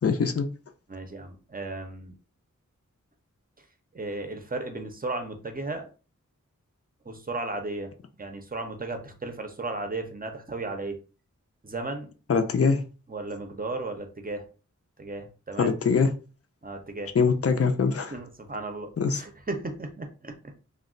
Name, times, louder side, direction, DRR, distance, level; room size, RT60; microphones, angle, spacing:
voice 1, 0.0-0.5 12.3-12.8 15.6-16.1 17.1-18.1 19.0-19.2, left 5 dB, 50° left, 0.5 m, -23 dB
voice 2, 0.9-2.1 3.9-5.9 7.1-7.9 8.2-11.0 11.6-12.1 13.1-14.5 15.0-15.7 16.6-17.1 18.1-20.7, right 2 dB, 30° right, 0.6 m, -35 dB
2.3 x 2.1 x 3.7 m
wide cardioid pair, 60°, 31 cm